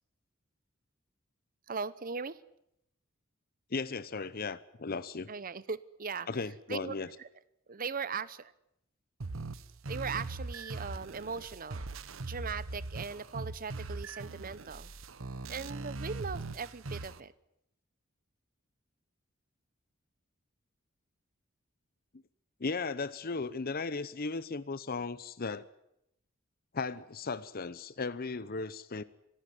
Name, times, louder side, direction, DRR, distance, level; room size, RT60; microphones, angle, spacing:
voice 1, 1.7-2.4 5.3-6.3 6.7-7.3 7.7-8.5 9.9-11.9 12.3-14.9 15.5-17.3, right 5 dB, 45° right, 17 dB, 0.9 m, -39 dB
voice 2, 3.7-5.3 6.3-7.1 22.6-25.7 26.7-29.0, left 4 dB, 50° left, 15 dB, 0.8 m, -36 dB
sound 1, 9.2-17.2, right 3 dB, 80° right, 1.1 m, -41 dB
25.0 x 15.0 x 9.8 m, 0.79 s
head